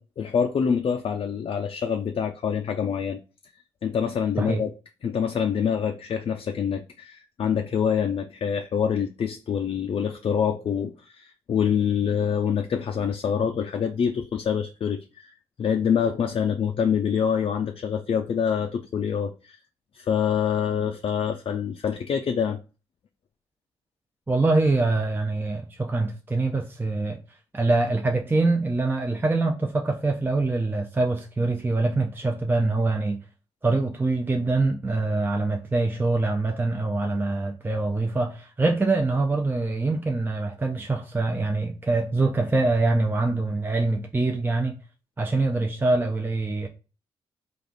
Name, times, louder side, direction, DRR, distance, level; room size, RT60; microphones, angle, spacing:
voice 1, 0.2-3.2 3.8-4.7 5.0-19.6 19.9-22.6, left 7 dB, 50° left, 0.4 m, -26 dB
voice 2, 24.3-27.2 27.5-33.2 33.6-44.8 45.2-46.7, right 3 dB, 15° right, 0.6 m, -24 dB
3.3 x 2.4 x 3.9 m
supercardioid pair, 45°, 12 cm